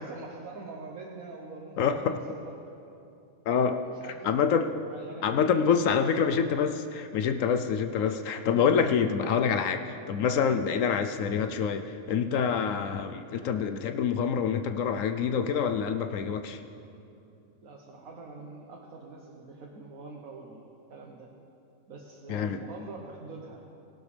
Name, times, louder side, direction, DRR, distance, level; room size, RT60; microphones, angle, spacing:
voice 1, 0.0-2.1 2.4-2.6 3.6-4.5 4.9-5.7 6.1-6.4 17.6-21.3 21.9-23.6, right 3 dB, 85° right, -2 dB, 1.5 m, -45 dB
voice 2, 1.8-2.2 3.5-3.8 4.2-4.7 5.2-16.6 22.3-22.6, left 6 dB, 75° left, 8 dB, 1.0 m, -26 dB
18.0 x 12.0 x 3.3 m, 2.7 s
omnidirectional pair, 1.4 m